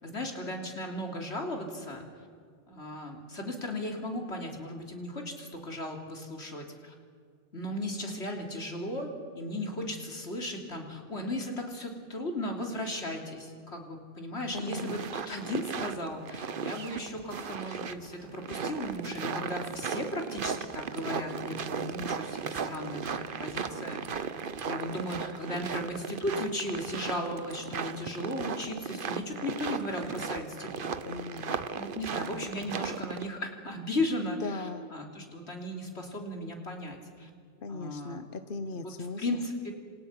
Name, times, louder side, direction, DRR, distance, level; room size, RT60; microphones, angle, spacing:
voice 1, 0.0-2.1 2.7-6.9 7.5-24.3 24.7-30.9 31.7-37.3 37.7-38.2 38.8-39.7, left 1 dB, 75° left, 2 dB, 3.6 m, -36 dB
voice 2, 14.5-15.1 31.1-31.6 34.4-34.9 37.6-39.2, left 3 dB, 55° left, 10 dB, 1.1 m, -38 dB
sound 1, 14.5-33.3, right 6 dB, 55° right, 1.1 m, -36 dB
27.5 x 27.0 x 5.8 m, 2.2 s
omnidirectional pair, 1.1 m